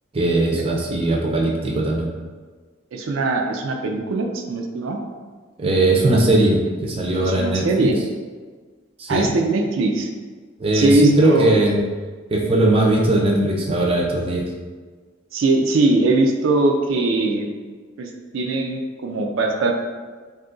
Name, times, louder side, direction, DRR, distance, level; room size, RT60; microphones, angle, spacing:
voice 1, 0.1-2.1 5.6-7.9 9.0-9.3 10.6-11.8 12.3-14.4, right 2 dB, 30° right, -1 dB, 0.4 m, -19 dB
voice 2, 2.9-5.0 7.2-8.0 9.1-10.1 10.7-11.5 15.3-17.5 18.0-19.7, right 2 dB, 90° right, 3 dB, 0.4 m, -21 dB
2.7 x 2.4 x 3.8 m, 1.5 s
head